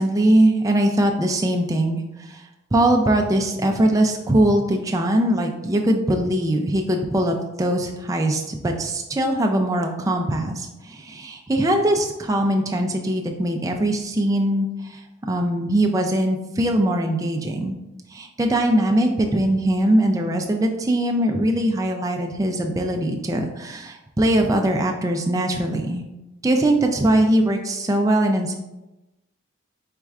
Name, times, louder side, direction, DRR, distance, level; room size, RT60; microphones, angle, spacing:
voice 1, 0.0-2.4 2.7-15.0 15.3-17.7 18.1-26.0 26.4-28.5, right 1 dB, 15° right, 2 dB, 0.3 m, -21 dB
4.5 x 4.1 x 2.3 m, 1.0 s
head